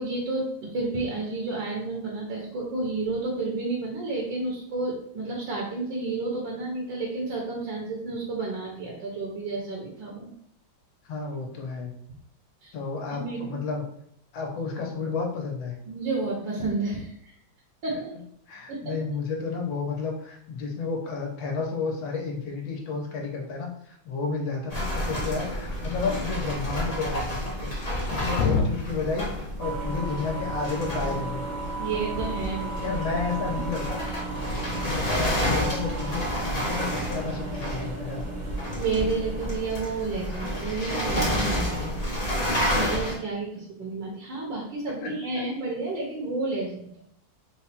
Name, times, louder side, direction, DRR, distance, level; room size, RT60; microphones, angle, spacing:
voice 1, 0.0-10.3 12.6-12.7 13.1-13.6 15.9-17.3 17.8-18.1 18.7-18.9 31.8-32.9 38.8-42.1 42.7-46.9, right 3 dB, 70° right, -3 dB, 1.5 m, -31 dB
voice 2, 11.1-11.9 12.7-13.8 14.3-15.8 18.5-27.7 28.0-29.3 29.6-31.5 32.8-34.0 34.7-36.2 36.5-38.3 45.0-45.1, left 4 dB, 75° left, 1 dB, 1.5 m, -31 dB
sound 1, 24.7-43.1, equal, 40° left, 0.5 m, -30 dB
sound 2, 25.5-26.3 27.8-29.0, left 5 dB, 90° left, 1.4 m, -29 dB
sound 3, 29.6-39.5, right 3 dB, 50° right, 1.1 m, -35 dB
4.0 x 2.2 x 4.3 m, 0.70 s
omnidirectional pair, 2.2 m